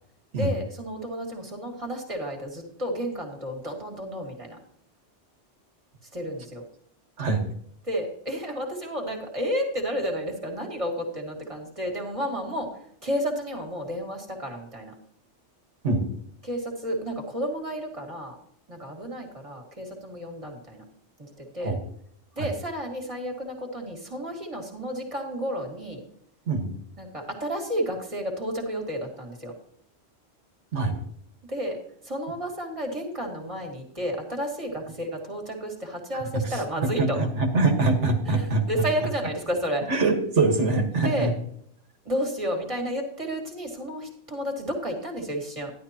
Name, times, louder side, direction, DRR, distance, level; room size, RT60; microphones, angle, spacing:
voice 1, 0.3-4.6 6.1-6.6 7.9-14.9 16.4-18.4 18.7-20.8 21.2-21.8 22.4-26.0 27.0-29.5 31.5-31.8 32.0-37.2 38.2-39.9 40.9-41.3 42.0-45.7, equal, 30° right, 1 dB, 2.3 m, -31 dB
voice 2, 36.8-38.8 39.9-41.3, right 3 dB, 85° right, 4 dB, 1.9 m, -23 dB
12.0 x 11.5 x 2.9 m, 0.68 s
omnidirectional pair, 1.2 m